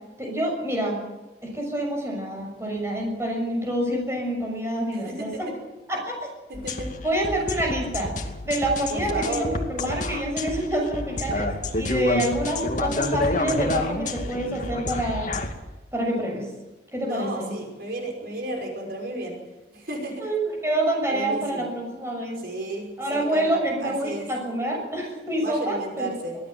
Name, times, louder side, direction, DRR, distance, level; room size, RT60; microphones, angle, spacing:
voice 1, 0.2-1.0 1.4-5.5 5.9-6.3 7.0-8.1 8.4-11.5 11.8-15.3 15.9-16.5 16.9-17.5 20.2-22.4 23.0-26.1, right 1 dB, 15° right, 0 dB, 6.5 m, -27 dB
voice 2, 4.9-5.5 6.5-6.9 8.9-9.6 17.0-19.4 19.7-20.2 21.1-21.7 22.4-24.3 25.4-26.4, right 1 dB, 55° right, 1 dB, 5.7 m, -33 dB
sound 1, 6.5-15.5, left 2 dB, 45° left, 2.4 m, -29 dB
24.0 x 16.5 x 7.8 m, 1.1 s
head